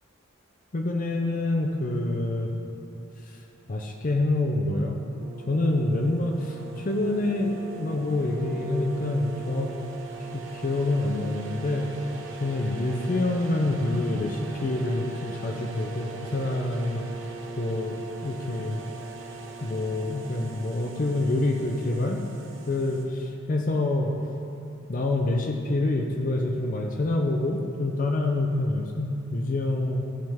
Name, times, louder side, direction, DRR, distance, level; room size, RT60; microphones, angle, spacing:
voice 1, 0.7-2.5 3.2-3.4 3.7-5.0 5.5-9.7 10.5-11.9 12.4-17.1 17.6-18.8 19.6-22.2 22.7-24.1 24.9-30.0, left 2 dB, 40° left, 2 dB, 0.5 m, -26 dB
sound 1, 5.2-23.1, right 4 dB, 65° right, 0.9 m, -41 dB
13.5 x 5.4 x 3.5 m, 2.8 s
head